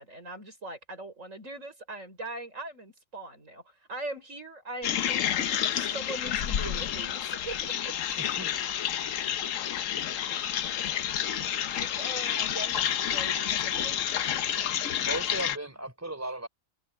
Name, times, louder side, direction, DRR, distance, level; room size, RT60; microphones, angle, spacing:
voice 1, 0.0-8.2 11.8-14.0, right 2 dB, 75° right, 5.8 m, -41 dB
sound 1, 4.8-15.6, left 9 dB, 80° left, 1.2 m, -29 dB
voice 2, 8.2-8.5 9.0-9.1 15.0-16.5, right 2 dB, 10° right, 3.4 m, -36 dB
omnidirectional pair, 1.3 m